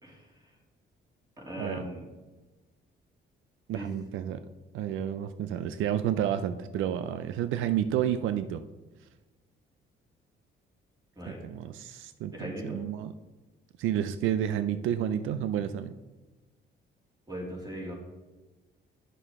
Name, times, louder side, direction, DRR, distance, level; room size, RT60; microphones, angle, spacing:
voice 1, 1.4-2.0 3.7-3.9 11.2-11.4 12.3-12.8 17.3-17.9, equal, 20° right, -2 dB, 2.7 m, -38 dB
voice 2, 3.7-4.4 4.7-8.6 11.3-13.1 13.8-15.9, right 10 dB, 85° right, 11 dB, 0.4 m, -30 dB
9.0 x 6.4 x 3.6 m, 1.2 s
cardioid pair, 90°, 20 cm